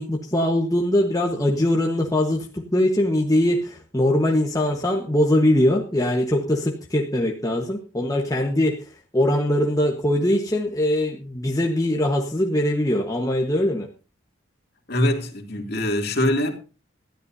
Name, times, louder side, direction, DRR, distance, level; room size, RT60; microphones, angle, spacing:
voice 1, 0.0-13.9, left 1 dB, 15° left, 1.2 m, -22 dB
voice 2, 14.9-16.5, left 1 dB, 50° left, 2.5 m, -23 dB
20.5 x 13.0 x 2.7 m
head